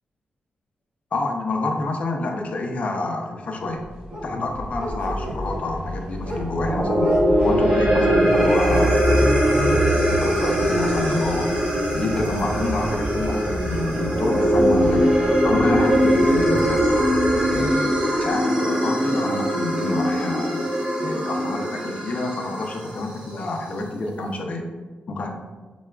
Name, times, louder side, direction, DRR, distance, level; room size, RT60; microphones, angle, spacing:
voice 1, 1.1-3.9 4.2-7.1 7.4-9.0 9.6-11.5 11.9-15.0 15.4-16.9 17.5-20.7 21.0-24.6 25.1-25.3, left 2 dB, 45° left, 2 dB, 0.5 m, -28 dB
sound 1, 3.8-18.4, right 1 dB, 85° right, 0.9 m, -29 dB
sound 2, 6.6-23.0, equal, 30° right, 0.8 m, -21 dB
sound 3, 8.7-17.7, right 1 dB, 65° right, 0.5 m, -33 dB
6.0 x 2.2 x 2.3 m, 1.3 s
wide cardioid pair, 140°, 3 cm